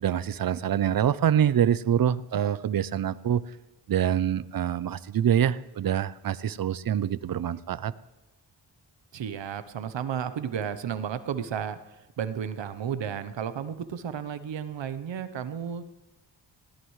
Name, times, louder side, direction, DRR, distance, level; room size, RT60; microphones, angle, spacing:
voice 1, 0.0-3.4 3.9-7.9, right 9 dB, 55° right, 17 dB, 0.6 m, -25 dB
voice 2, 9.1-15.9, right 8 dB, 85° right, 12 dB, 0.9 m, -33 dB
20.5 x 17.0 x 3.2 m, 1.0 s
wide cardioid pair, 95°, 43 cm